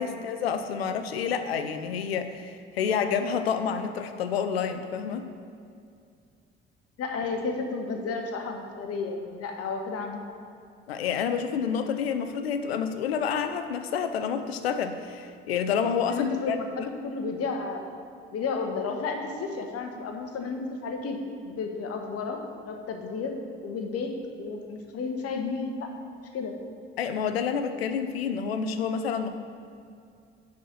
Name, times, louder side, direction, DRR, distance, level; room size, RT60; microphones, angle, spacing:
voice 1, 0.0-5.3 10.9-16.8 27.0-29.3, left 7 dB, 85° left, 9 dB, 0.6 m, -29 dB
voice 2, 7.0-10.2 16.1-17.8 18.3-21.2 21.4-23.4 23.6-25.9 26.3-26.5, left 4 dB, 50° left, 4 dB, 1.3 m, -32 dB
9.9 x 4.2 x 6.5 m, 2.4 s
figure-of-eight pair, 50°, 30 cm